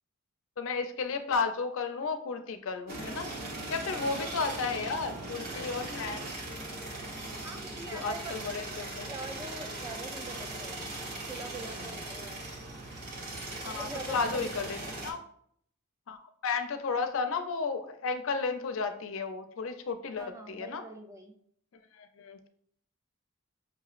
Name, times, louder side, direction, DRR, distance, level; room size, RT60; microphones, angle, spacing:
voice 1, 0.6-3.3 3.7-6.3 7.9-9.0 13.6-14.8 15.0-15.2 16.1-20.8 22.0-22.4, left 4 dB, 60° left, 8 dB, 0.4 m, -33 dB
sound 1, 2.9-15.1, right 2 dB, 45° right, 1.0 m, -39 dB
voice 2, 3.9-4.4 7.4-8.4 9.1-10.8 11.3-12.5 13.6-15.1 20.2-21.3, right 3 dB, 15° right, 4 dB, 0.3 m, -44 dB
5.9 x 2.9 x 2.4 m, 0.65 s
head